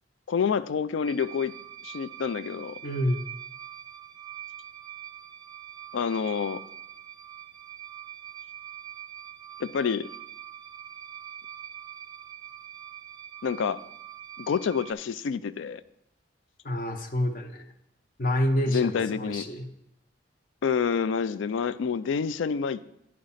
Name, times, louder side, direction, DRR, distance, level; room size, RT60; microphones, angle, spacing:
voice 1, 0.3-1.6 1.8-2.8 5.9-6.6 9.6-10.1 13.4-13.8 14.4-15.8 18.7-19.5 20.6-23.0, left 6 dB, 80° left, 15 dB, 0.4 m, -28 dB
sound 1, 1.1-14.9, right 11 dB, 20° right, 0.4 m, -44 dB
voice 2, 2.8-3.2 16.6-17.6 18.2-19.7, left 1 dB, 45° left, 5 dB, 0.7 m, -28 dB
9.6 x 5.1 x 5.6 m, 0.80 s
head